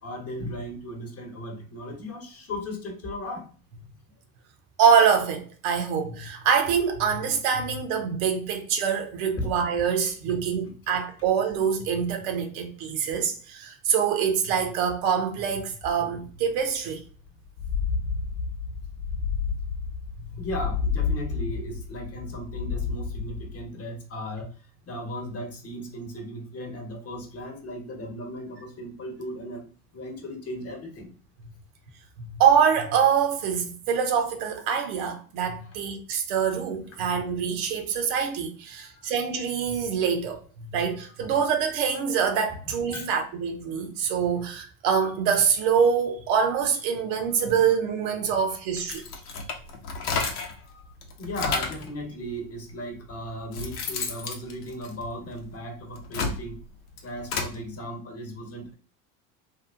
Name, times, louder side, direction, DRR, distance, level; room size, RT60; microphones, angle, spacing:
voice 1, 0.0-3.5 9.4-9.5 20.4-29.6 29.9-31.1 38.8-39.1 42.9-43.1 50.3-50.8 51.2-56.6 57.0-58.7, equal, 30° left, 1.1 m, -36 dB
voice 2, 4.8-17.0 20.3-20.4 32.2-49.0, right 7 dB, 65° right, 0.8 m, -25 dB
sound 1, 16.6-16.7 16.9-17.0 17.5-23.6, left 5 dB, 50° left, 0.6 m, -30 dB
sound 2, 48.8-50.6 51.0-51.9 52.7-52.8 53.3-55.4 55.9-57.6, left 4 dB, 85° left, 0.8 m, -31 dB
2.9 x 2.3 x 2.5 m
hypercardioid pair, 85°, 44 cm